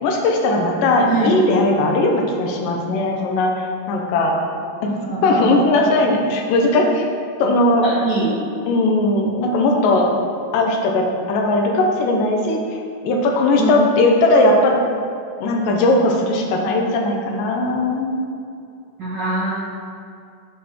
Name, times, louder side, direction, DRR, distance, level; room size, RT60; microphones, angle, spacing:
voice 1, 0.0-4.4 4.8-7.1 7.4-7.9 8.7-10.1 10.5-12.6 13.0-14.8 15.4-18.3, left 2 dB, 85° left, 1 dB, 2.3 m, -18 dB
voice 2, 1.1-1.4 5.0-5.9 7.8-8.5 13.6-13.7 19.0-19.5, right 3 dB, 80° right, -9 dB, 0.9 m, -23 dB
7.2 x 6.3 x 2.9 m, 2.5 s
omnidirectional pair, 3.9 m